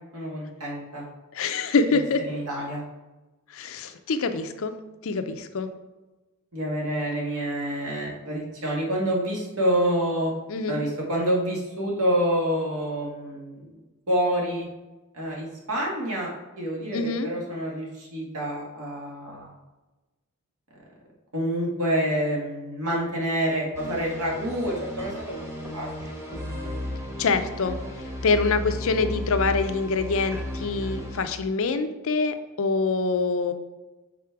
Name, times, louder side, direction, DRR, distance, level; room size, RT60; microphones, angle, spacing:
voice 1, 0.1-1.0 2.3-2.8 6.5-10.3 10.7-13.8 14.1-14.7 15.1-16.3 16.6-19.6 21.3-25.5 25.7-26.3, equal, 75° right, -2 dB, 1.9 m, -27 dB
voice 2, 1.3-2.2 3.5-4.7 5.0-5.7 10.5-10.8 16.9-17.3 27.2-33.5, left 4 dB, 65° left, 9 dB, 0.5 m, -25 dB
sound 1, 23.7-31.3, left 1 dB, 15° right, 1.1 m, -34 dB
6.0 x 4.2 x 4.7 m, 1.1 s
head